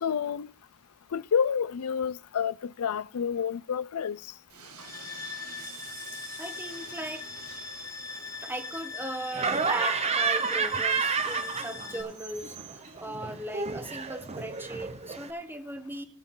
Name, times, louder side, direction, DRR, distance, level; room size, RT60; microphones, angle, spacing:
voice 1, 0.0-0.5 1.1-4.2, left 7 dB, 80° left, 0.5 m, -29 dB
Train, 4.5-14.9, right 5 dB, 75° right, 2.0 m, -50 dB
sound 1, 4.8-12.0, left 4 dB, 15° left, 0.9 m, -40 dB
voice 2, 6.4-7.2 8.4-12.5 13.0-16.0, right 1 dB, 10° right, 1.2 m, -38 dB
Laughter, 9.3-12.1 12.4-15.3, right 5 dB, 30° right, 0.8 m, -30 dB
17.5 x 6.2 x 3.8 m
head